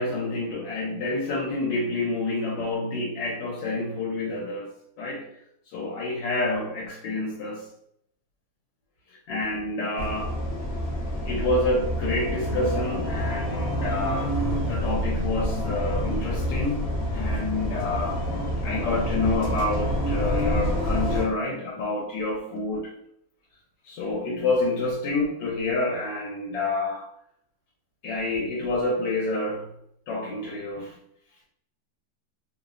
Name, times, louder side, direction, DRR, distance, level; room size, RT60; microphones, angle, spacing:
voice 1, 0.0-4.7 5.0-5.3 5.7-7.7 9.1-10.4 11.3-16.9 17.1-18.2 18.6-22.9 23.8-27.1 28.0-29.7 30.1-31.0, left 2 dB, 80° left, -3 dB, 1.2 m, -28 dB
sound 1, 10.0-21.2, equal, 55° left, 0.6 m, -27 dB
3.1 x 2.0 x 2.4 m, 0.71 s
omnidirectional pair, 2.0 m